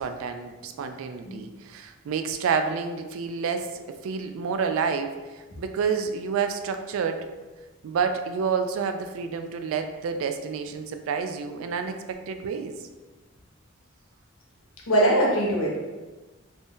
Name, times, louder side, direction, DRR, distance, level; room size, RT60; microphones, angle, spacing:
voice 1, 0.0-7.3 7.8-12.8, right 6 dB, 85° right, 7 dB, 0.3 m, -29 dB
voice 2, 14.9-15.8, right 1 dB, 85° left, -3 dB, 0.8 m, -22 dB
2.6 x 2.1 x 3.5 m, 1.2 s
head